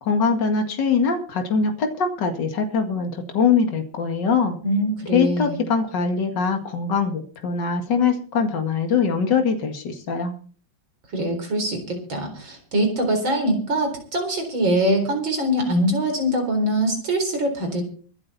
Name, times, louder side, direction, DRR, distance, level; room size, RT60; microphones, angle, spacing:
voice 1, 0.0-4.6 5.1-10.3, left 5 dB, 65° left, 5 dB, 2.6 m, -22 dB
voice 2, 4.6-5.6 11.1-17.9, right 1 dB, 75° right, 4 dB, 4.8 m, -23 dB
24.0 x 8.6 x 4.2 m, 0.43 s
omnidirectional pair, 2.1 m